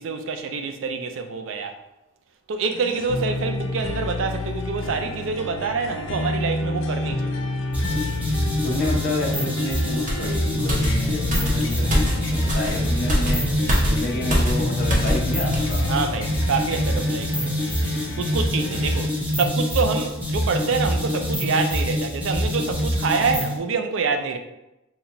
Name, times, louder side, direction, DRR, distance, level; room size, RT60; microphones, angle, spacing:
voice 1, 0.0-1.8 2.5-7.5 15.9-17.6 18.2-24.4, right 5 dB, 85° right, 0.4 m, -26 dB
sound 1, 2.7-19.1, left 2 dB, 90° left, 0.5 m, -30 dB
sound 2, 7.7-23.6, equal, 10° right, 0.7 m, -25 dB
voice 2, 8.6-13.5 13.8-15.8, left 1 dB, 50° left, 0.7 m, -29 dB
sound 3, 10.1-15.3 15.5-15.7, equal, 40° right, 0.8 m, -25 dB
3.9 x 2.1 x 2.9 m
head